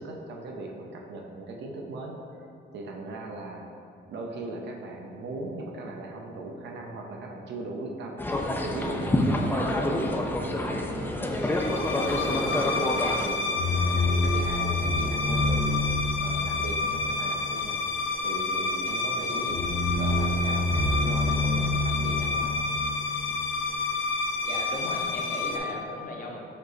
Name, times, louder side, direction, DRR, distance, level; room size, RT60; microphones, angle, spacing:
voice 1, 0.0-2.5 2.7-3.7 4.1-13.5 13.8-17.8 18.2-22.6, right 2 dB, 65° right, 0 dB, 0.5 m, -38 dB
sound 1, 8.2-13.3, left 1 dB, 10° left, 0.3 m, -27 dB
sound 2, 11.4-25.6, left 3 dB, 75° left, 0.6 m, -27 dB
voice 2, 24.4-26.5, left 2 dB, 45° left, 0 dB, 0.7 m, -37 dB
5.2 x 2.0 x 3.8 m, 2.7 s
cardioid pair, 90°, 20 cm